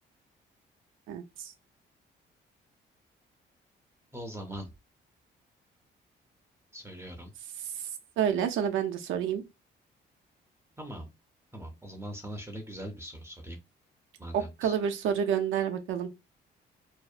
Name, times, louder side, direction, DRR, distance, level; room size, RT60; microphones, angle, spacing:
voice 1, 1.1-1.5 8.2-9.4 14.3-16.1, right 8 dB, 80° right, 0.5 m, -29 dB
voice 2, 4.1-4.7 6.7-7.3 10.8-11.1 11.5-13.6 14.2-14.8, right 1 dB, 15° right, 0.5 m, -41 dB
2.6 x 2.0 x 2.4 m
cardioid pair, 90°, 20 cm